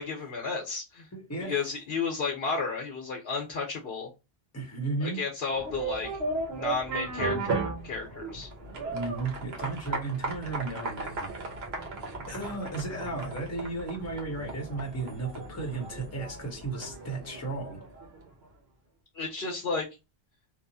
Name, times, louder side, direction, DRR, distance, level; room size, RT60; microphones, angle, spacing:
voice 1, 0.0-1.1 1.4-4.1 5.0-6.1 6.5-8.5 19.1-19.9, left 4 dB, 70° left, 1.0 m, -32 dB
voice 2, 1.1-1.6 4.5-5.2 8.9-11.3 12.3-17.8, right 3 dB, 15° left, 0.7 m, -34 dB
sound 1, 5.5-18.3, right 3 dB, 75° right, 1.0 m, -36 dB
2.8 x 2.0 x 2.6 m
omnidirectional pair, 1.1 m